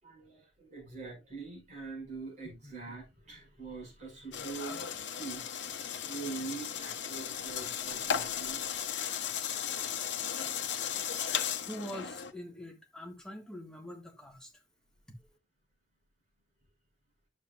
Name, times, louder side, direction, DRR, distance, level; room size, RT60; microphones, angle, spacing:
voice 1, 0.0-8.8, right 4 dB, 40° right, 5.9 m, -44 dB
sound 1, 4.3-12.3, left 8 dB, 80° left, 0.9 m, -36 dB
voice 2, 11.7-14.5 15.1-15.2, equal, 5° left, 1.4 m, -44 dB
11.0 x 7.3 x 2.4 m
head